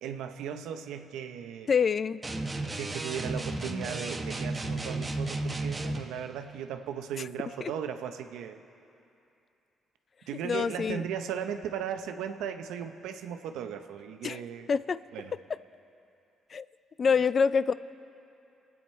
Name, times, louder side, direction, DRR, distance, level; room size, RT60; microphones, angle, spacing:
voice 1, 0.0-1.7 2.7-8.6 10.3-14.7 15.1-15.4, right 8 dB, 90° right, 7 dB, 0.7 m, -37 dB
voice 2, 1.7-2.2 7.6-7.7 10.4-11.0 14.2-14.4 14.7-15.0 16.5-16.7 17.0-17.7, left 6 dB, 45° left, 16 dB, 0.3 m, -26 dB
sound 1, 2.2-6.1, right 2 dB, 20° right, 1.2 m, -33 dB
26.0 x 8.8 x 4.4 m, 2.7 s
cardioid pair, 90°, 0 cm